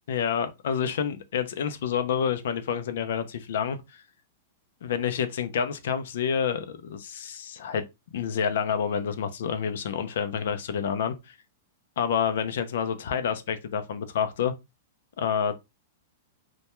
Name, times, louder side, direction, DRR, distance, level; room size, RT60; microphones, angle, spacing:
voice 1, 0.1-4.0 4.8-7.8 8.1-11.3 12.0-14.5 15.2-15.6, left 7 dB, 65° left, 0.4 m, -28 dB
2.2 x 2.1 x 2.9 m
supercardioid pair, 170°, 0 cm